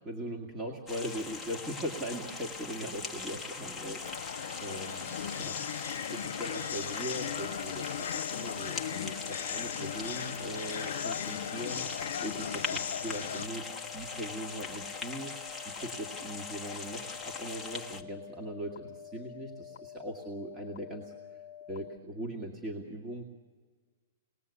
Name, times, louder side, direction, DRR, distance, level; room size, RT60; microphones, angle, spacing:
voice 1, 0.0-11.9 12.2-13.7 13.9-21.1 21.7-23.2, equal, 20° right, 0 dB, 2.1 m, -40 dB
sound 1, 0.9-18.0, left 4 dB, 5° left, 1.3 m, -41 dB
sound 2, 4.0-13.5, left 8 dB, 85° left, 0.7 m, -37 dB
sound 3, 7.2-22.0, left 10 dB, 55° left, 0.9 m, -48 dB
27.5 x 20.0 x 8.4 m, 1.5 s
hypercardioid pair, 150°, 0 cm